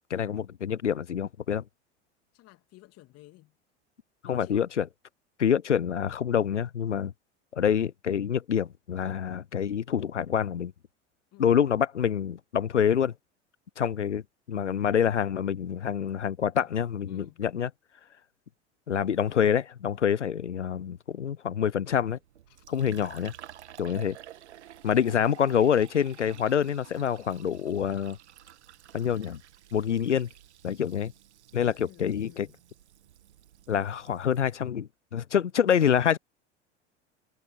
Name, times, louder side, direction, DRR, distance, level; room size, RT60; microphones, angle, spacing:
voice 1, 0.1-1.6 4.2-4.9 5.4-7.1 7.5-10.7 11.4-13.1 13.8-14.2 14.5-17.7 18.9-22.2 22.7-23.3 23.8-24.2 24.8-28.2 28.9-29.4 29.7-30.3 30.6-31.1 31.5-32.5 33.7-36.2, left 8 dB, 85° left, 0.7 m, -26 dB
voice 2, 2.3-3.5 4.2-4.7 11.3-11.5 16.5-16.7 17.1-17.4 22.5-23.1 31.5-32.6, left 18 dB, 45° left, 2.8 m, -52 dB
Fill (with liquid), 22.1-34.6, right 11 dB, 70° right, 1.9 m, -51 dB
figure-of-eight pair, 80°, 35 cm